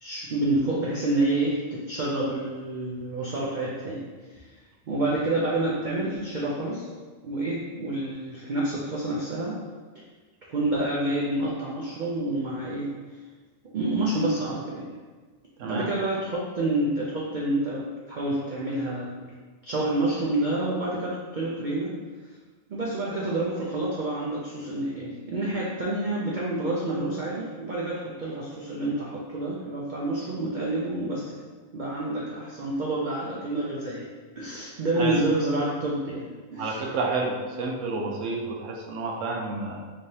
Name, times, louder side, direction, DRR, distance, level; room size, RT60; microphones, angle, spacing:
voice 1, 0.0-4.4 4.9-6.9 7.2-9.6 10.5-13.0 13.7-14.9 15.6-19.3 19.6-22.0 22.7-31.3 31.7-34.1 34.4-36.9, right 2 dB, 85° right, -4 dB, 0.4 m, -28 dB
voice 2, 15.6-15.9 35.0-35.2 36.6-39.8, right 3 dB, 70° right, 1 dB, 0.9 m, -30 dB
3.4 x 3.2 x 2.7 m, 1.4 s
omnidirectional pair, 1.4 m